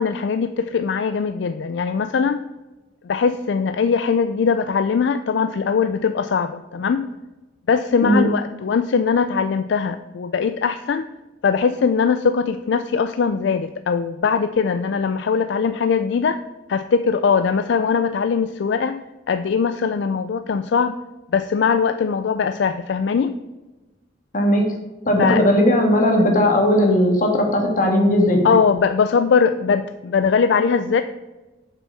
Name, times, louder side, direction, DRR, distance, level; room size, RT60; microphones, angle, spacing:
voice 1, 0.0-2.4 3.0-7.1 7.7-11.1 11.4-16.4 16.7-19.0 19.3-21.0 21.3-23.3 25.2-25.4 28.4-31.0, left 5 dB, 65° left, 10 dB, 0.4 m, -20 dB
voice 2, 24.3-24.7 25.0-28.5, left 1 dB, 45° left, 2 dB, 1.7 m, -17 dB
7.0 x 6.0 x 5.5 m, 1.1 s
head